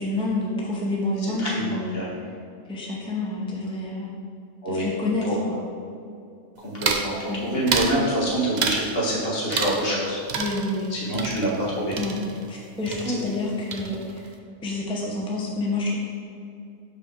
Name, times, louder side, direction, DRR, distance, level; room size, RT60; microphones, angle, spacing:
voice 1, 0.0-2.2 2.7-4.1 4.7-5.6 7.2-7.5 10.3-10.9 12.0-12.2 12.5-14.3 14.6-15.9, left 2 dB, 5° left, -3 dB, 0.7 m, -28 dB
voice 2, 1.4-2.1 4.6-4.9 5.2-5.4 6.6-7.1 7.4-10.2 10.9-11.9 13.2-13.3, right 1 dB, 55° left, -6 dB, 1.6 m, -26 dB
sound 1, 6.8-7.1 7.7-8.0 8.6-8.9 9.5-10.0 10.3-12.6 12.9-13.4 13.7-14.3, right 5 dB, 55° right, 0.5 m, -29 dB
6.3 x 5.2 x 3.7 m, 2.5 s
omnidirectional pair, 1.2 m